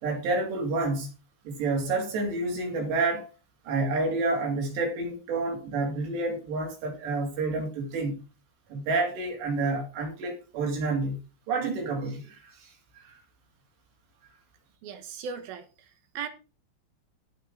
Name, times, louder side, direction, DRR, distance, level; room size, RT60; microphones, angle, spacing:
voice 1, 0.0-1.1 1.5-3.3 3.7-8.2 8.7-11.2 11.5-12.7 13.0-13.1, right 3 dB, 85° right, 5.3 m, -29 dB
voice 2, 14.8-16.3, right 6 dB, 70° right, 3.0 m, -38 dB
16.5 x 5.5 x 4.0 m
omnidirectional pair, 4.8 m